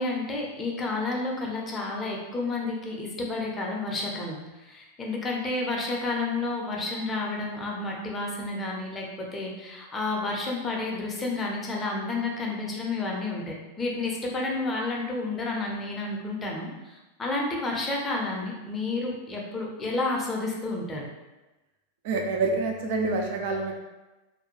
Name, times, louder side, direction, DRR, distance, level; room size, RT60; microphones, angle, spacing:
voice 1, 0.0-21.1, left 2 dB, 20° left, -2 dB, 0.6 m, -31 dB
voice 2, 22.0-23.7, right 3 dB, 50° right, 1 dB, 0.4 m, -27 dB
2.5 x 2.2 x 3.0 m, 1.1 s
figure-of-eight pair, 90°, 0 cm